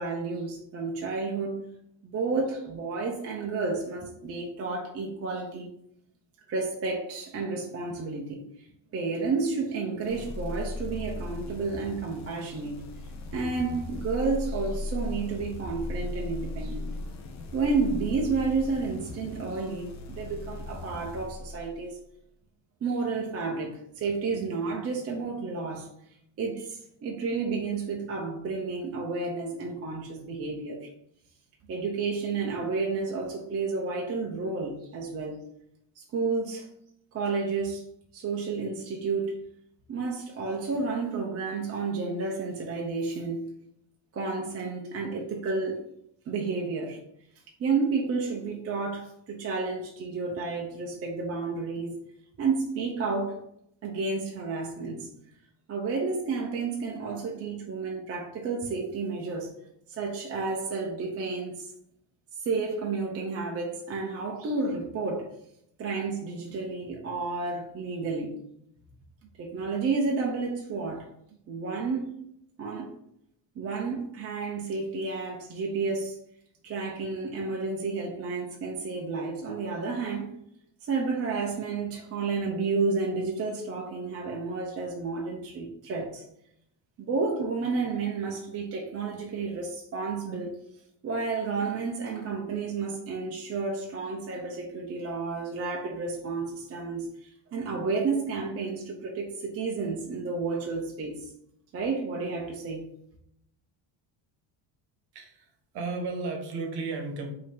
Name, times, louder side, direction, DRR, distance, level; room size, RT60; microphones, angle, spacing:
voice 1, 0.0-1.6 2.0-5.7 6.5-8.4 8.9-12.8 13.3-16.9 17.5-22.0 22.8-25.9 26.4-30.9 31.7-35.4 36.0-36.7 37.1-37.8 38.1-39.4 39.9-43.5 44.1-45.9 46.3-47.0 47.6-52.0 52.4-53.4 53.8-55.1 55.7-59.5 59.9-61.7 62.4-65.3 65.8-68.3 69.4-71.1 71.5-72.1 72.6-72.9 73.6-76.2 76.6-80.3 80.8-86.2 87.0-90.6 91.0-101.3 101.7-102.9, right 4 dB, 30° right, 0 dB, 0.6 m, -31 dB
sound 1, 10.0-22.0, left 2 dB, 35° left, 0.6 m, -37 dB
voice 2, 105.1-107.3, right 3 dB, 55° right, 3 dB, 1.1 m, -34 dB
5.3 x 2.8 x 3.4 m, 0.73 s
cardioid pair, 155°, 48 cm